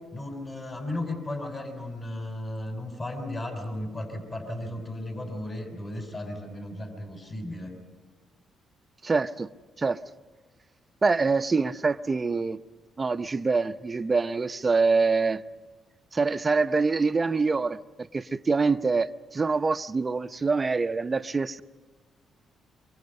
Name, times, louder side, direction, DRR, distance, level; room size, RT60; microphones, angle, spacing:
voice 1, 0.1-7.7, left 1 dB, 35° left, 5.7 m, -35 dB
voice 2, 9.0-9.5 9.8-10.0 11.0-12.6 13.0-15.4 16.1-17.8 18.1-21.6, right 4 dB, 30° right, 0.7 m, -25 dB
25.0 x 24.0 x 5.4 m
cardioid pair, 90°, 0 cm